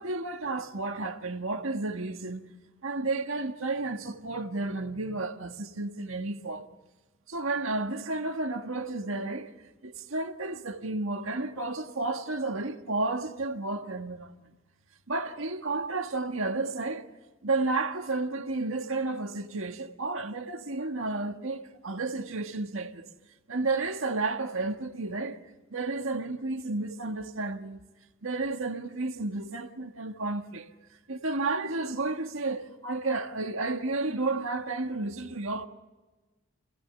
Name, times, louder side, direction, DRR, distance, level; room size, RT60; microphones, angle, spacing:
voice 1, 0.0-2.4 2.8-6.7 7.3-9.5 9.8-14.4 15.1-17.1 17.4-23.1 23.5-25.4 25.7-27.8 28.2-30.7 31.1-35.7, right 3 dB, 85° right, 1.7 m, -32 dB
29.0 x 16.0 x 9.7 m
head